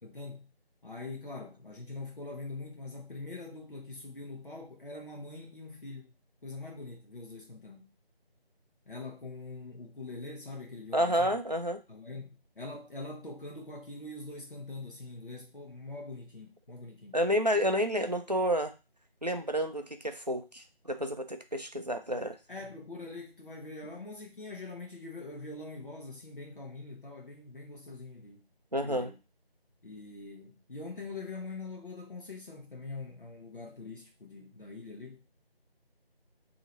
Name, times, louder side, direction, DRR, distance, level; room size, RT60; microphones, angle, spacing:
voice 1, 0.0-0.5 0.8-6.1 6.4-7.9 8.9-11.3 11.9-17.2 22.5-28.4 28.8-29.2 29.8-35.2, left 3 dB, 55° left, 0.9 m, -43 dB
voice 2, 10.9-11.8 17.1-18.7 19.2-22.4 28.7-29.1, equal, 45° right, 0.4 m, -30 dB
2.8 x 2.7 x 4.2 m
figure-of-eight pair, 175°, 31 cm